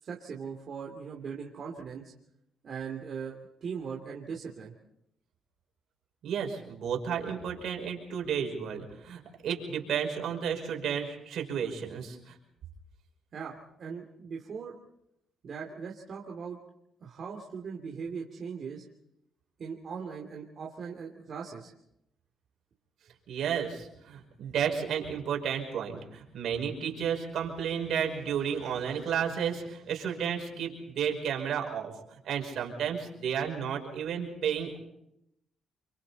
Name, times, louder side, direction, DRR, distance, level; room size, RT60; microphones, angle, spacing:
voice 1, 0.0-2.1 2.6-4.7 13.3-14.8 15.4-16.6 17.0-18.8 19.6-21.7, right 6 dB, 55° right, -1 dB, 2.9 m, -39 dB
voice 2, 6.2-12.4 23.3-34.8, right 8 dB, 75° right, 2 dB, 5.6 m, -32 dB
30.0 x 24.5 x 4.3 m, 0.81 s
cardioid pair, 90°, 0 cm